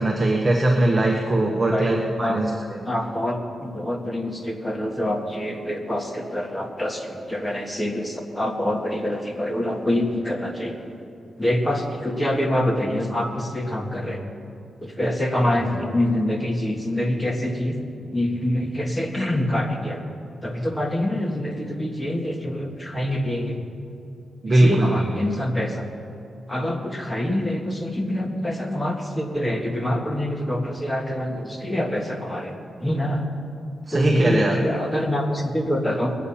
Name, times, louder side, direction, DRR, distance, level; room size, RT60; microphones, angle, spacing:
voice 1, 0.0-2.8 24.4-24.9 33.9-34.6, right 1 dB, 30° right, 1 dB, 1.2 m, -20 dB
voice 2, 2.9-11.0 11.4-14.2 14.8-17.8 18.1-20.0 20.4-23.6 24.5-25.9 26.5-33.2 33.9-36.2, left 1 dB, 15° left, 3 dB, 1.7 m, -25 dB
21.0 x 8.4 x 5.8 m, 2.6 s
cardioid pair, 90°, 0 cm